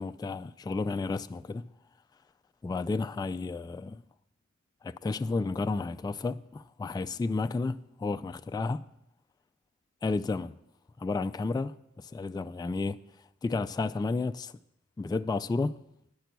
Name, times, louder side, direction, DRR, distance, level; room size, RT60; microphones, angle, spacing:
voice 1, 0.0-1.7 2.6-4.0 4.8-8.8 10.0-10.5 11.0-13.0 13.4-14.5 15.0-15.8, left 3 dB, 15° left, 0.3 m, -32 dB
10.5 x 5.9 x 8.1 m
wide cardioid pair, 60°, 29 cm